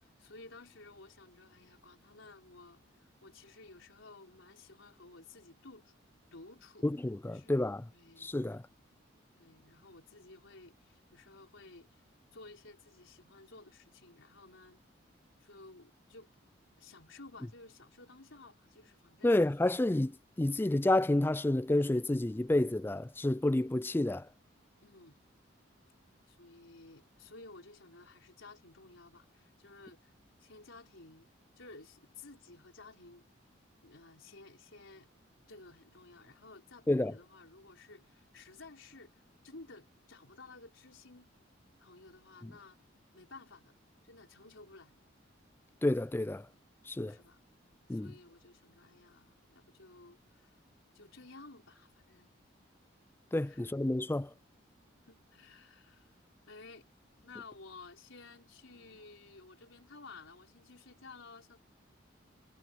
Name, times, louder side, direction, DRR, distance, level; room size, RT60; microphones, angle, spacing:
voice 1, 0.0-5.9 6.3-6.9 7.3-7.6 7.9-8.4 9.4-12.0 12.3-14.8 15.4-16.3 16.8-19.3 24.8-25.2 26.3-30.1 30.4-31.3 31.6-33.3 33.8-35.1 35.5-41.3 41.8-42.8 43.1-43.8 44.0-45.0 47.1-47.4 47.9-50.6 50.9-52.3 53.5-53.7 55.1-56.2 56.5-56.9 57.2-61.6, left 3 dB, 85° left, 4.3 m, -54 dB
voice 2, 6.8-7.8 8.2-8.6 19.2-24.3 36.9-37.1 45.8-46.5 46.9-47.2 47.9-48.1 53.3-54.3, left 1 dB, 10° left, 0.3 m, -29 dB
head